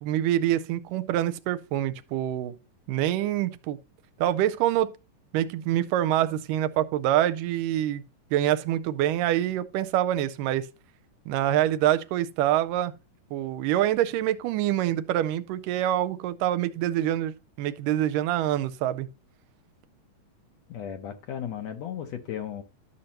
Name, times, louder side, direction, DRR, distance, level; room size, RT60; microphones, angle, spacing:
voice 1, 0.0-2.5 2.9-3.8 4.2-4.9 5.3-8.0 8.3-10.7 11.3-12.9 13.3-19.1, right 12 dB, 85° right, 2.2 m, -25 dB
voice 2, 20.7-22.6, left 9 dB, 70° left, 1.7 m, -35 dB
12.5 x 6.5 x 2.9 m
omnidirectional pair, 3.8 m